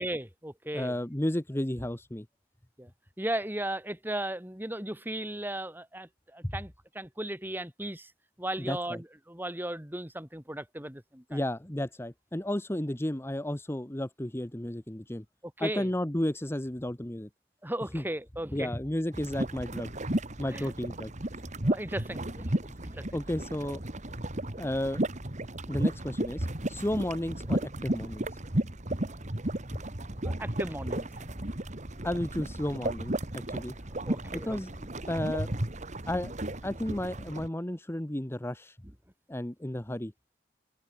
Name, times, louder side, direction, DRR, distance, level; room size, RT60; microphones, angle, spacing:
voice 1, 0.0-0.9 2.8-2.9 3.2-8.1 8.4-11.4 15.6-15.9 17.6-18.7 20.5-20.7 21.6-23.2 30.2-31.3 34.1-34.6, right 1 dB, 10° right, 4.1 m, -36 dB
voice 2, 0.7-2.3 6.4-6.5 8.6-9.0 11.3-15.2 15.6-17.3 17.9-18.0 18.5-19.9 20.4-21.1 22.6-22.8 23.1-23.8 24.6-25.0 25.7-28.4 29.7-29.8 32.0-33.7 34.3-35.5 36.1-36.3 36.6-38.8 39.3-40.1, left 1 dB, 15° left, 1.0 m, -33 dB
sound 1, 19.1-37.5, right 1 dB, 40° right, 2.2 m, -34 dB
open air
head